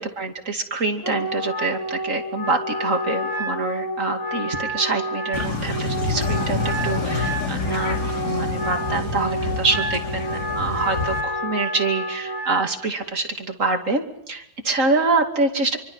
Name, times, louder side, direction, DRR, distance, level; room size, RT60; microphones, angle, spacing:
voice 1, 0.0-8.0 8.2-15.8, right 3 dB, 45° right, 4 dB, 2.9 m, -25 dB
Wind instrument woodwind instrument, 1.0-12.7, equal, 10° left, 3.0 m, -29 dB
sound 1, 5.3-11.2, left 3 dB, 55° left, 3.7 m, -27 dB
26.5 x 24.0 x 5.6 m, 0.85 s
omnidirectional pair, 2.0 m